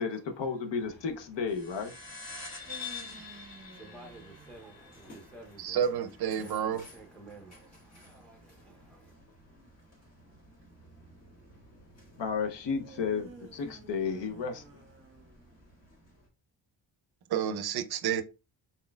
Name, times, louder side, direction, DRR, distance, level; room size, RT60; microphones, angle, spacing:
voice 1, 0.0-1.9 12.2-14.6, left 5 dB, 70° left, 0.8 m, -33 dB
sound 1, 0.7-16.3, equal, 35° left, 1.5 m, -56 dB
sound 2, 1.5-6.4, left 5 dB, 50° left, 1.6 m, -45 dB
voice 2, 2.3-5.8 6.4-9.1, right 3 dB, 5° left, 0.6 m, -53 dB
sound 3, 2.5-5.6 12.8-15.7, right 4 dB, 30° right, 0.8 m, -53 dB
voice 3, 5.6-6.9 17.3-18.2, right 8 dB, 60° right, 0.5 m, -30 dB
4.2 x 3.8 x 2.2 m
wide cardioid pair, 175°, 45 cm